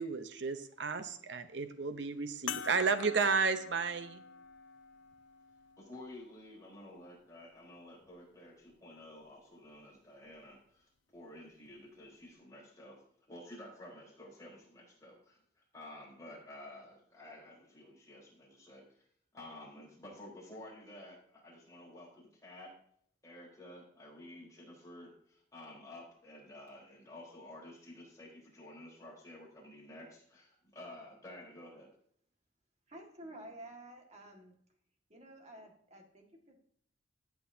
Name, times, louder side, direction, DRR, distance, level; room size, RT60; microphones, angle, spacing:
voice 1, 0.0-4.2, right 5 dB, 65° right, 10 dB, 0.8 m, -32 dB
sound 1, 2.5-7.3 8.1-8.2 10.3-10.4, left 7 dB, 80° left, 0.5 m, -47 dB
voice 2, 5.8-13.0 13.3-19.0 19.3-22.7 23.2-31.9, left 1 dB, 20° left, -4 dB, 4.0 m, -52 dB
voice 3, 32.9-34.6 35.1-36.6, right 1 dB, 35° right, 2 dB, 1.8 m, -51 dB
14.0 x 8.3 x 2.8 m, 0.65 s
head